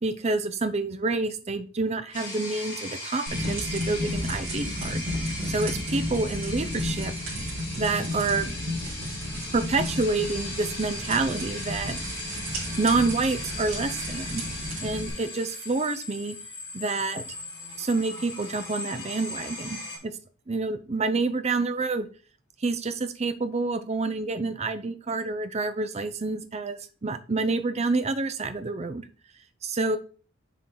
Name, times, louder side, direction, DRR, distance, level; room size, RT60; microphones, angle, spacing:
voice 1, 0.0-7.1 7.8-8.6 9.5-12.0 12.8-14.4 14.8-16.4 16.7-17.3 17.8-20.2 20.5-22.1 22.6-29.0 29.6-30.0, right 3 dB, 30° right, 10 dB, 0.5 m, -28 dB
sound 1, 2.1-20.0, left 2 dB, 40° left, 3.2 m, -38 dB
sound 2, 3.3-15.1, equal, 65° right, 3.4 m, -33 dB
7.1 x 4.3 x 3.8 m, 0.39 s
head